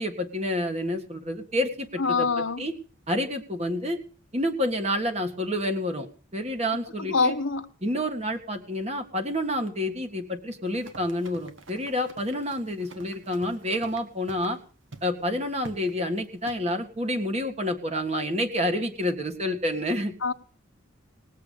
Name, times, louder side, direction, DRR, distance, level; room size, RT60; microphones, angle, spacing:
voice 1, 0.0-2.7 3.1-4.0 4.3-7.3 7.8-14.6 15.0-20.1, left 1 dB, 35° right, 1.7 m, -29 dB
voice 2, 2.0-2.7 7.1-7.7 20.2-20.3, left 4 dB, 80° left, 1.2 m, -24 dB
Run, 10.7-14.6 14.9-15.1 15.6-15.9 16.5-16.6, right 2 dB, 75° right, 1.6 m, -48 dB
19.5 x 7.6 x 5.2 m
head